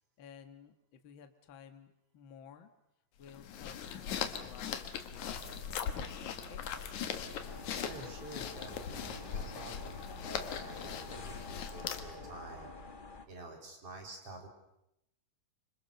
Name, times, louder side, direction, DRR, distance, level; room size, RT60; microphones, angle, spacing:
voice 1, 0.2-2.7 3.2-6.6, left 7 dB, 50° left, 8 dB, 2.0 m, -55 dB
sound 1, 3.2-12.2, left 8 dB, 80° left, 2.9 m, -40 dB
sound 2, 5.2-12.9, right 3 dB, 30° right, 3.0 m, -55 dB
sound 3, 7.4-13.3, left 3 dB, 30° left, 1.0 m, -49 dB
voice 2, 7.7-12.7 13.3-14.5, right 2 dB, 55° right, 3 dB, 5.1 m, -49 dB
26.5 x 26.5 x 6.8 m, 0.84 s
omnidirectional pair, 3.3 m